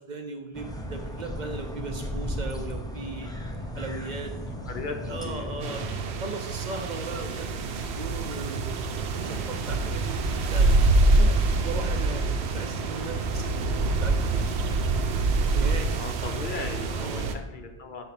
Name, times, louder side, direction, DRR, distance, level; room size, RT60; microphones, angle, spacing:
voice 1, 0.0-3.3 3.7-4.3 5.0-10.0 10.3-10.9 11.2-11.3 11.6-14.8 15.5-15.9 16.6-17.3, right 3 dB, 50° right, 4 dB, 0.7 m, -38 dB
sound 1, 0.5-6.0, equal, 5° left, 0.5 m, -35 dB
voice 2, 5.2-5.8 15.9-18.1, left 4 dB, 55° left, 5 dB, 0.8 m, -37 dB
sound 2, 5.6-17.4, right 2 dB, 85° right, 0.9 m, -25 dB
5.6 x 4.2 x 5.8 m, 1.0 s
omnidirectional pair, 1.1 m